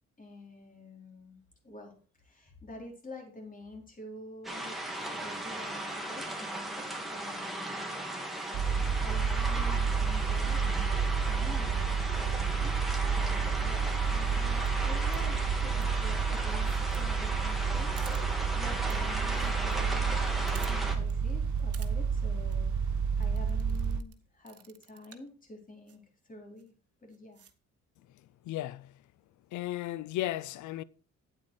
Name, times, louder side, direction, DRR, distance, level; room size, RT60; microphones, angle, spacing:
voice 1, 0.2-8.7 9.0-12.8 13.1-20.2 20.7-26.7 27.0-27.4, left 1 dB, 25° left, 4.4 m, -48 dB
sound 1, 4.4-20.9, right 1 dB, ahead, 2.6 m, -36 dB
sound 2, 8.5-24.0, right 6 dB, 70° right, 0.8 m, -30 dB
sound 3, 14.7-14.8 15.1-15.4 15.7-15.8 16.5-17.0 17.3-17.4 17.6-17.7 18.0-18.2 18.9-19.0 19.2-19.8 20.1-20.2 20.5-20.7 21.1-21.2 21.6-21.9 22.3-22.5 23.2-24.1 24.5-25.3 25.9-26.0 26.6-26.7 27.1-27.5, right 9 dB, 50° right, 1.3 m, -51 dB
voice 2, 28.4-28.9 29.5-30.8, left 14 dB, 75° left, 0.6 m, -35 dB
9.1 x 8.8 x 4.7 m
cardioid pair, 90°, 30 cm